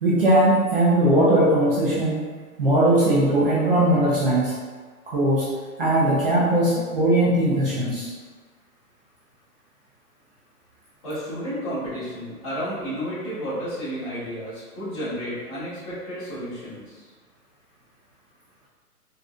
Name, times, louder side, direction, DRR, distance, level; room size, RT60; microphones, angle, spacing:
voice 1, 0.0-2.2 2.6-4.5 5.1-5.5 5.8-8.1, right 1 dB, 40° right, -8 dB, 0.5 m, -19 dB
voice 2, 11.0-17.1, equal, 25° left, -13 dB, 1.4 m, -32 dB
3.7 x 2.4 x 2.4 m, 1.5 s
hypercardioid pair, 165°, 46 cm